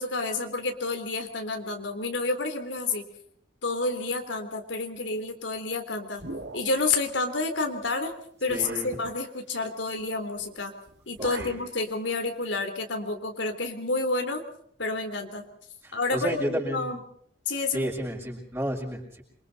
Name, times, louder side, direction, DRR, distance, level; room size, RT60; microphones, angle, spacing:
voice 1, 0.0-3.1 3.6-6.2 6.5-8.1 8.4-10.7 11.1-14.4 14.8-15.4 15.9-17.0 17.5-17.9, left 3 dB, 70° left, 5 dB, 3.5 m, -29 dB
sound 1, 6.2-7.0 7.9-8.0 8.5-9.0 10.4-10.6 10.9-11.7, right 2 dB, 60° right, 2.4 m, -40 dB
voice 2, 8.5-8.9 11.4-11.6 15.8-17.0 17.7-19.2, equal, 15° right, -2 dB, 6.5 m, -31 dB
27.5 x 25.0 x 4.2 m, 0.66 s
head